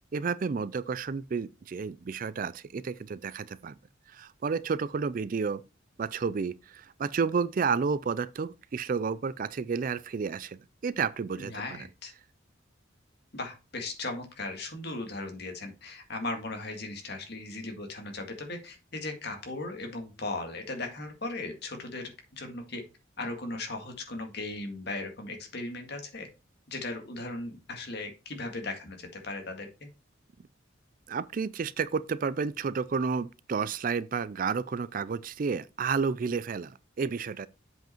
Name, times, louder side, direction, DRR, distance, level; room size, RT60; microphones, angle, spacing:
voice 1, 0.1-3.7 4.1-5.6 6.0-11.8 31.1-37.5, right 5 dB, 45° right, 0.4 m, -31 dB
voice 2, 11.4-12.1 13.3-22.8 23.2-26.3 26.7-29.7, left 2 dB, 55° left, 2.0 m, -37 dB
7.8 x 5.3 x 4.4 m
head